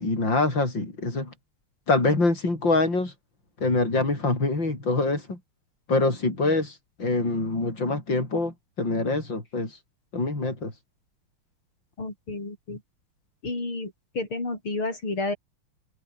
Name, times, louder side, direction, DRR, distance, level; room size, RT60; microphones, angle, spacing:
voice 1, 0.0-1.3 1.9-3.1 3.6-5.4 5.9-9.7 10.1-10.7, left 3 dB, 60° left, 7.5 m, -25 dB
voice 2, 12.0-12.8 13.4-15.4, left 2 dB, 90° left, 7.9 m, -31 dB
omnidirectional pair, 2.3 m